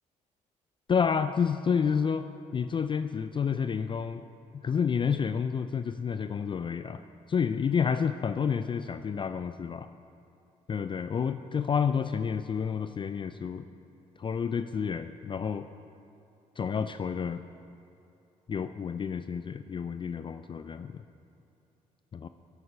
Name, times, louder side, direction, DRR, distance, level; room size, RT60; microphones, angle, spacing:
voice 1, 0.9-4.2 4.6-7.0 7.3-9.9 10.7-13.6 14.2-15.7 16.6-17.4 18.5-21.0 22.1-22.3, left 6 dB, 35° left, 10 dB, 0.4 m, -29 dB
11.0 x 8.2 x 5.6 m, 2.8 s
supercardioid pair, 60°, 15 cm